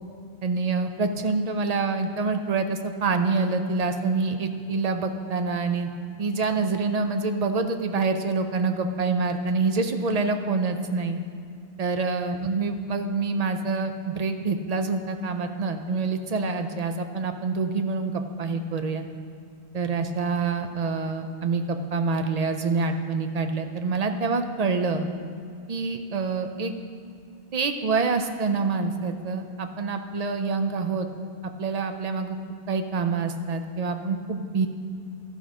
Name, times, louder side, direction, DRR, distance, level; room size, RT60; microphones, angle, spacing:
voice 1, 0.4-5.9 6.2-11.2 11.8-19.1 19.7-25.1 25.7-26.7 27.5-31.1 31.4-32.4 32.7-34.7, right 4 dB, 50° right, 7 dB, 0.5 m, -26 dB
12.5 x 5.3 x 4.9 m, 2.4 s
omnidirectional pair, 1.1 m